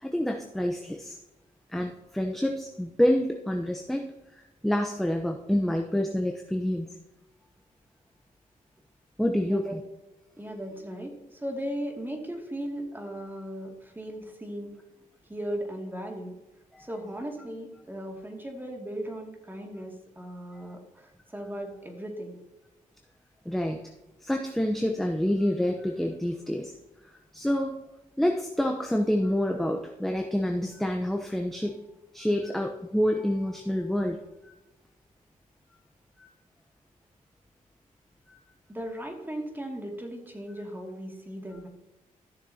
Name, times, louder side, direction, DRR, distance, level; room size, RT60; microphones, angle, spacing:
voice 1, 0.0-1.2 1.7-4.1 4.6-6.9 9.2-9.8 16.7-16.8 23.5-23.8 24.2-26.7 27.3-27.8 28.2-31.8 32.1-34.2 36.2-36.3 38.3-38.4, equal, ahead, 3 dB, 0.8 m, -27 dB
voice 2, 9.4-9.8 10.4-14.8 15.3-16.3 16.8-22.4 38.7-41.7, right 1 dB, 15° right, 1 dB, 2.4 m, -37 dB
15.0 x 6.6 x 2.9 m, 1.0 s
cardioid pair, 80°, 15 cm